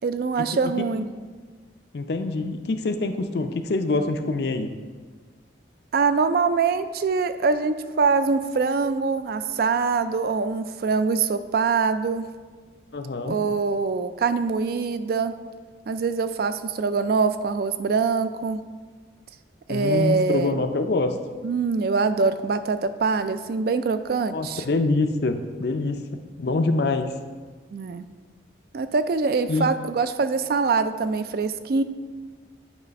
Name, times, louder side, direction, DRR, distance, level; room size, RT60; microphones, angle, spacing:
voice 1, 0.0-1.1 5.9-12.2 13.3-15.3 15.9-18.6 19.7-20.6 21.4-24.6 27.7-28.0 28.7-31.8, right 4 dB, 50° right, 11 dB, 0.3 m, -24 dB
voice 2, 1.9-4.7 12.9-13.4 19.7-21.2 24.3-26.0 26.4-27.1 29.5-29.7, left 3 dB, 60° left, 7 dB, 0.5 m, -25 dB
9.2 x 3.2 x 5.2 m, 1.5 s
head